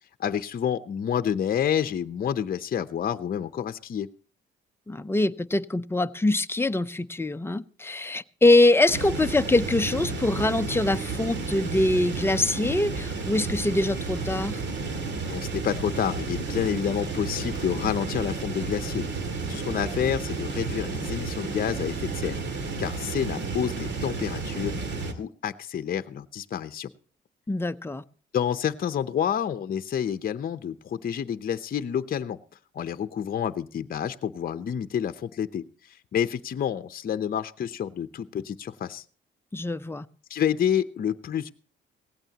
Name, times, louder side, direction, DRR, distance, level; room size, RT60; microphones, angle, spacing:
voice 1, 0.2-4.1 15.3-19.1 19.5-22.4 22.8-24.7 25.1-26.9 28.3-32.4 32.7-39.0 40.3-41.5, left 8 dB, 45° left, 0.8 m, -29 dB
voice 2, 4.9-14.6 27.5-28.0 39.5-40.1, left 2 dB, 10° left, 0.7 m, -24 dB
sound 1, 8.9-25.1, right 4 dB, 65° right, 2.4 m, -32 dB
18.0 x 16.0 x 2.9 m
cardioid pair, 90°, 20 cm